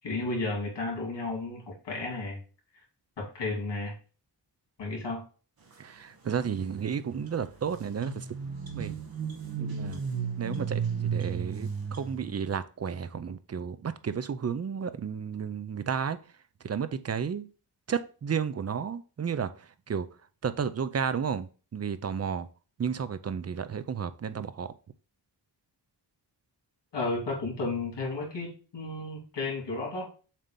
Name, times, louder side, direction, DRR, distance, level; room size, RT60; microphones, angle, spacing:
voice 1, 0.0-2.4 3.2-3.9 4.8-5.2 26.9-30.1, left 3 dB, 80° left, 3.2 m, -33 dB
voice 2, 5.8-8.2 8.7-9.0 9.6-10.0 10.4-16.2 16.6-17.5 17.9-19.5 19.9-20.1 20.4-22.5 22.8-24.7, right 7 dB, 40° right, 0.5 m, -32 dB
sound 1, 7.3-7.4 7.6-12.3, right 7 dB, 60° right, 1.2 m, -33 dB
7.5 x 2.9 x 5.2 m
wide cardioid pair, 140°, 41 cm